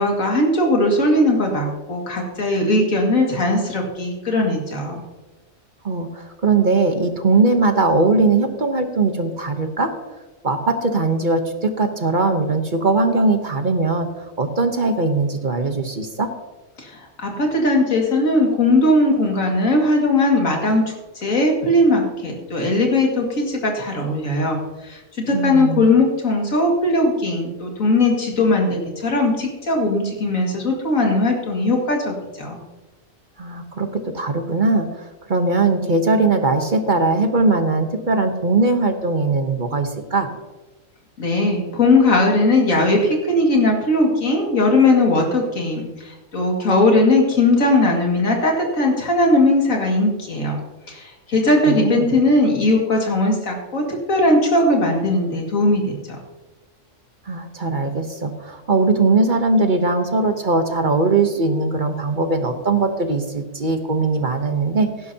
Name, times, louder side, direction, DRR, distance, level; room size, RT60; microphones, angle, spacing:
voice 1, 0.0-5.0 16.8-25.0 25.3-32.6 41.2-50.6 50.9-56.2, left 2 dB, 85° left, 0 dB, 2.6 m, -19 dB
voice 2, 5.8-9.9 10.4-14.1 14.4-16.3 25.3-25.9 33.4-40.3 51.7-52.1 57.3-65.1, right 3 dB, 40° right, 6 dB, 1.1 m, -20 dB
17.0 x 11.0 x 2.8 m, 1.1 s
omnidirectional pair, 1.4 m